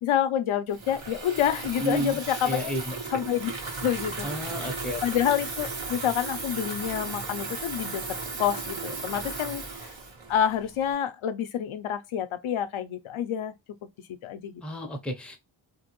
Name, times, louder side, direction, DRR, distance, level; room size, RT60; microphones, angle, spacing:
voice 1, 0.0-2.7 3.1-3.5 3.8-4.3 5.0-9.9 10.3-13.5 14.2-14.6, left 10 dB, 85° left, 0.6 m, -28 dB
Water tap faucet / Fill (with liquid), 0.7-10.9, right 3 dB, 75° right, 1.2 m, -36 dB
voice 2, 1.8-2.2 2.4-3.0 4.2-5.0 14.6-15.4, right 1 dB, ahead, 0.6 m, -31 dB
2.9 x 2.6 x 2.9 m
wide cardioid pair, 130°, 47 cm